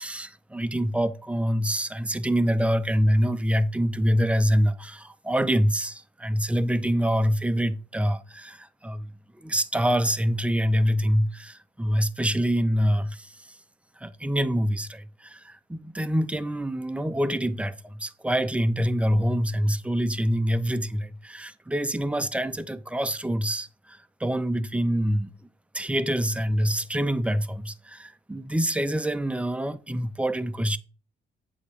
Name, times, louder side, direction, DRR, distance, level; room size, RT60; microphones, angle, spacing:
voice 1, 0.0-9.1 9.4-13.4 14.0-25.3 25.7-30.8, equal, 5° right, 0.5 m, -25 dB
8.0 x 2.8 x 6.1 m
cardioid pair, 90°, 20 cm